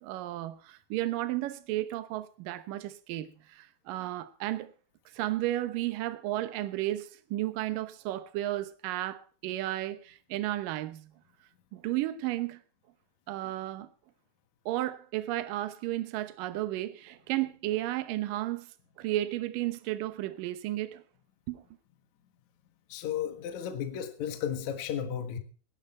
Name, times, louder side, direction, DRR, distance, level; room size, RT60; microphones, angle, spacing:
voice 1, 0.0-4.7 5.1-11.1 11.7-12.6 13.3-13.9 14.7-18.7 19.0-21.0 21.5-21.6, right 15 dB, 75° right, 2.1 m, -33 dB
voice 2, 22.9-25.4, left 9 dB, 55° left, 2.2 m, -34 dB
19.5 x 10.5 x 4.3 m
omnidirectional pair, 5.1 m